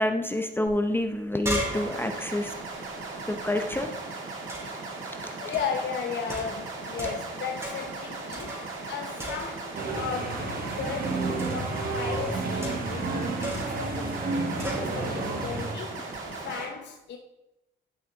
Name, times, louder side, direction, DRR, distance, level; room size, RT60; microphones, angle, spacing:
voice 1, 0.0-2.5 3.3-3.9, left 1 dB, 10° left, 0.7 m, -27 dB
sound 1, 0.7-0.8 1.0-3.8 4.5-4.9 5.5-5.8 6.3-7.3 7.6-8.0 8.3-8.9 9.2-9.8 11.4-11.7 12.6-13.0 13.4-13.8 14.6-14.9, right 1 dB, 15° right, 3.0 m, -36 dB
sound 2, 1.6-16.7, right 3 dB, 80° right, 1.8 m, -38 dB
voice 2, 5.4-16.0 16.4-17.2, left 6 dB, 65° left, 0.8 m, -36 dB
sound 3, 9.8-15.7, right 3 dB, 50° right, 1.6 m, -31 dB
10.5 x 5.4 x 3.8 m
cardioid pair, 90°, 20 cm